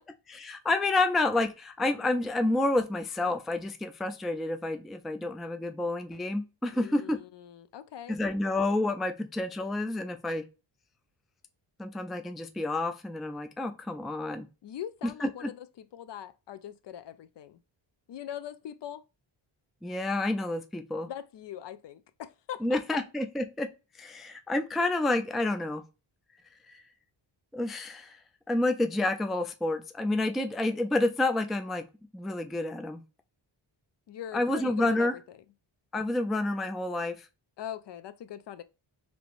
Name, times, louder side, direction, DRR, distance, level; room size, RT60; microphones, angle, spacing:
voice 1, 0.3-7.2 8.1-10.4 11.8-14.5 15.2-15.5 19.8-21.1 22.6-23.7 24.0-25.8 27.5-28.2 28.5-31.8 32.1-33.0 34.3-35.1 35.9-37.3, left 2 dB, ahead, 0.3 m, -29 dB
voice 2, 6.7-8.2 14.6-17.6 18.1-19.0 21.1-22.8 34.1-35.2 37.6-38.6, left 10 dB, 60° left, 0.5 m, -42 dB
3.3 x 2.9 x 2.5 m
cardioid pair, 65°, 50 cm